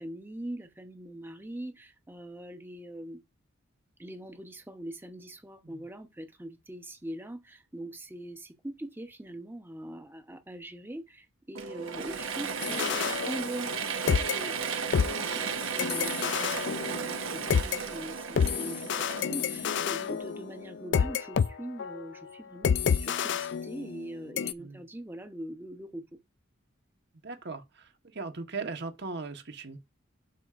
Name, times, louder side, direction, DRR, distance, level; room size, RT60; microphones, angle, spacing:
voice 1, 0.0-3.2 4.0-12.9 13.3-14.6 15.2-26.1, right 1 dB, 10° right, 0.9 m, -42 dB
Mechanisms / Drill, 11.5-20.2, right 6 dB, 85° right, 1.2 m, -35 dB
sound 1, 12.6-13.8 14.1-17.8 18.4-21.5 21.8-22.0 22.6-24.1 24.4-24.5, left 7 dB, 60° left, 0.4 m, -29 dB
voice 2, 27.2-27.9 28.1-29.8, right 4 dB, 60° right, 1.2 m, -38 dB
11.5 x 4.8 x 2.5 m
head